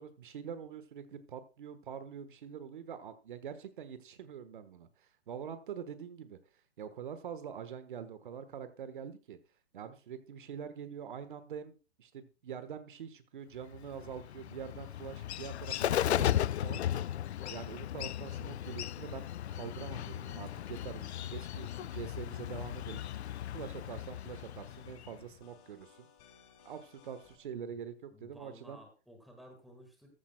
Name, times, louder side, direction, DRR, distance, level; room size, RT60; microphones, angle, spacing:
voice 1, 0.0-6.4 6.8-9.4 9.7-16.8 17.5-23.1 23.5-26.1 26.6-28.8, right 7 dB, 50° right, 11 dB, 1.3 m, -45 dB
Bird, 13.7-25.2, left 11 dB, 75° left, 0.5 m, -36 dB
sound 1, 21.6-27.4, left 7 dB, 20° left, 1.4 m, -61 dB
voice 2, 28.1-30.1, equal, ahead, 2 dB, 1.5 m, -55 dB
14.0 x 13.0 x 2.2 m, 0.32 s
hypercardioid pair, 165°, 33 cm